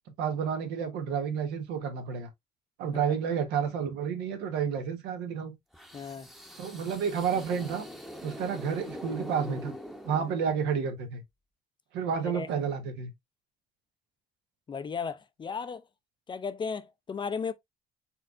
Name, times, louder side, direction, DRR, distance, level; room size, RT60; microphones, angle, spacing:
voice 1, 0.2-2.3 2.8-5.5 6.6-7.8 8.2-9.7 10.0-11.2 11.9-13.1, right 7 dB, 90° right, 1.3 m, -30 dB
sound 1, 5.7-10.8, equal, ahead, 0.8 m, -43 dB
voice 2, 5.9-6.3 12.2-12.5 14.7-15.8 16.3-17.5, left 5 dB, 30° left, 0.5 m, -35 dB
4.3 x 3.9 x 2.4 m
cardioid pair, 110°, 17 cm